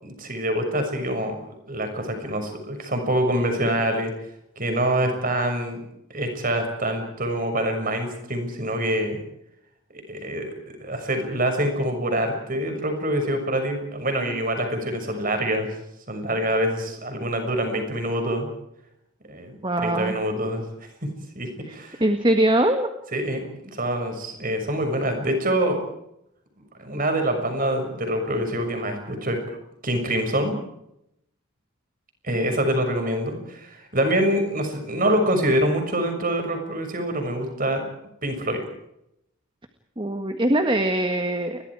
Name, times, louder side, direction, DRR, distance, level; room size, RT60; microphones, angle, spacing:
voice 1, 0.0-4.1 4.6-5.8 6.1-9.2 9.9-10.5 10.8-15.7 16.1-18.5 19.3-20.6 21.3-22.0 23.1-25.8 26.8-29.4 29.8-30.6 32.2-37.8 38.2-38.6, right 1 dB, 40° right, 5 dB, 6.3 m, -25 dB
voice 2, 19.6-20.2 21.7-21.8 22.0-22.9 40.0-41.6, right 1 dB, 20° right, 6 dB, 1.7 m, -22 dB
30.0 x 22.5 x 4.9 m, 0.79 s
head